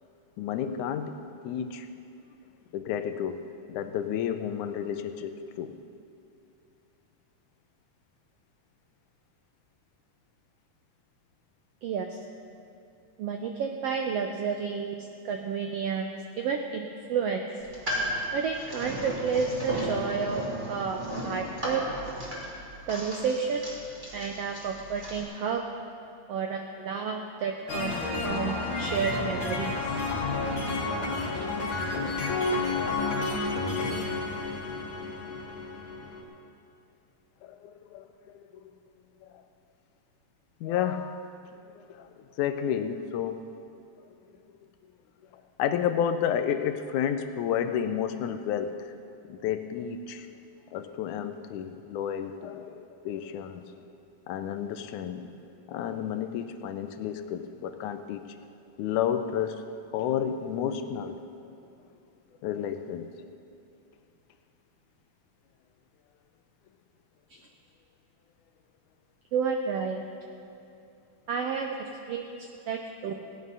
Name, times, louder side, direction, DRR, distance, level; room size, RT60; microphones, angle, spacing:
voice 1, 0.4-1.2 1.4-1.9 2.7-3.4 3.7-5.7 27.7-28.0 30.0-30.3 37.4-38.1 38.3-38.7 39.2-39.4 40.6-41.3 42.0-43.5 44.0-44.1 45.6-48.9 49.3-50.3 50.7-53.7 54.3-55.3 55.7-58.2 58.8-59.6 59.9-61.2 62.4-63.1, left 9 dB, 80° left, 9 dB, 2.0 m, -31 dB
voice 2, 11.8-12.2 13.2-17.4 18.3-20.4 20.7-21.8 22.9-23.6 24.1-25.6 26.3-28.0 28.2-29.9 31.3-31.5 67.3-67.4 69.3-70.0 71.3-73.2, right 6 dB, 80° right, 3 dB, 1.4 m, -31 dB
sound 1, 17.6-25.2, equal, 15° right, 2.3 m, -35 dB
sound 2, 27.7-36.2, left 3 dB, 45° left, 2.1 m, -30 dB
17.5 x 9.8 x 5.4 m, 2.7 s
omnidirectional pair, 3.6 m